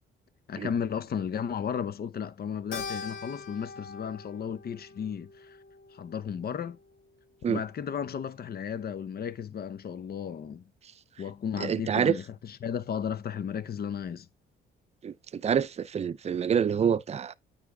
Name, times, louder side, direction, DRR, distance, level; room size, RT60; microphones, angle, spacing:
voice 1, 0.5-5.6 5.9-6.8 7.5-10.6 11.2-14.3, left 7 dB, 50° left, 0.8 m, -34 dB
Keyboard (musical), 2.7-7.3, left 5 dB, 80° left, 2.2 m, -43 dB
voice 2, 11.6-12.2 15.0-17.3, right 7 dB, 35° right, 0.5 m, -27 dB
9.2 x 3.5 x 3.7 m
cardioid pair, 90°, 20 cm